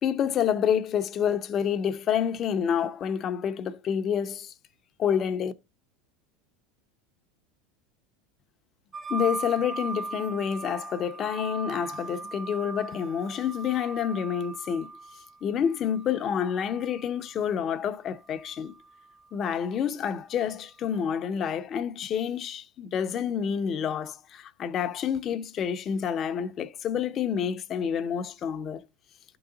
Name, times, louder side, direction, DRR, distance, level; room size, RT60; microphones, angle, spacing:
voice 1, 0.0-4.5 5.0-5.5 9.1-14.9 15.4-18.7 19.3-28.8, left 8 dB, 35° left, 0.7 m, -28 dB
sound 1, 8.9-17.3 18.3-19.2, right 3 dB, 20° right, 0.6 m, -39 dB
11.5 x 3.9 x 3.8 m
supercardioid pair, 125°, 0 cm